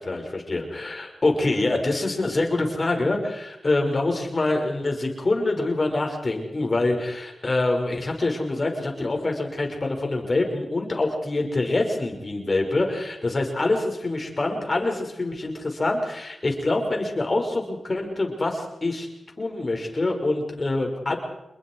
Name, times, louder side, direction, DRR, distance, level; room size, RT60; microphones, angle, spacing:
voice 1, 0.0-19.1 19.4-21.2, left 2 dB, 40° left, 2 dB, 5.9 m, -25 dB
27.5 x 22.0 x 4.8 m, 0.89 s
cardioid pair, 55°, 0 cm